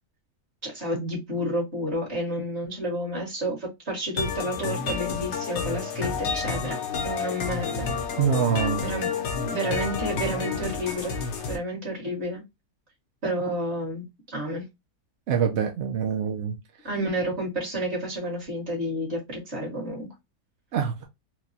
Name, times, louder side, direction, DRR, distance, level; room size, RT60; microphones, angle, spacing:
voice 1, 0.6-6.8 7.0-7.9 8.8-9.1 9.4-11.1 11.5-12.4 13.2-14.7 16.8-20.1, equal, 45° right, 2.1 m, -30 dB
sound 1, 4.2-11.6, left 5 dB, 55° left, 0.9 m, -30 dB
voice 2, 8.2-8.8 15.3-16.6 20.7-21.0, right 7 dB, 60° right, 0.7 m, -25 dB
4.5 x 2.2 x 2.7 m
omnidirectional pair, 1.6 m